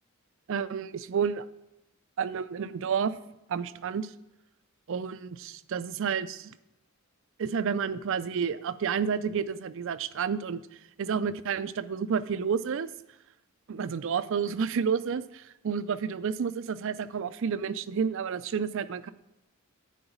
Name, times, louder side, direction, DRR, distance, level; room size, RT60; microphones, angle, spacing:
voice 1, 0.5-1.4 2.2-3.1 3.5-4.1 4.9-6.5 7.4-10.6 11.0-12.9 13.7-19.1, right 6 dB, 65° right, 14 dB, 0.4 m, -30 dB
9.2 x 3.9 x 7.2 m, 0.94 s
head